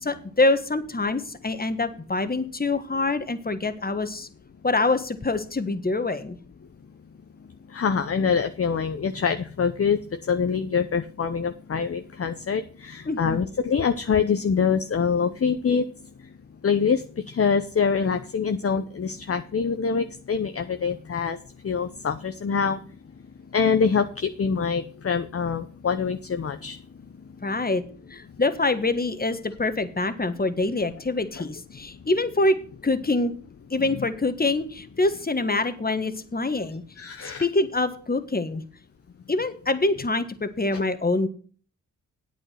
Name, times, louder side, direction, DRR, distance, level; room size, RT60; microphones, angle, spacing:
voice 1, 0.0-4.3 4.6-6.4 13.0-13.4 27.4-27.8 28.1-32.5 32.8-33.3 33.7-36.8 37.2-38.6 39.3-41.3, left 2 dB, 25° left, 10 dB, 1.5 m, -25 dB
voice 2, 7.7-15.9 16.6-21.4 21.6-22.8 23.5-26.8 33.9-34.1 37.0-37.4 40.7-40.8, left 6 dB, 40° left, 8 dB, 0.8 m, -25 dB
8.5 x 8.4 x 5.8 m, 0.42 s
cardioid pair, 45°, 34 cm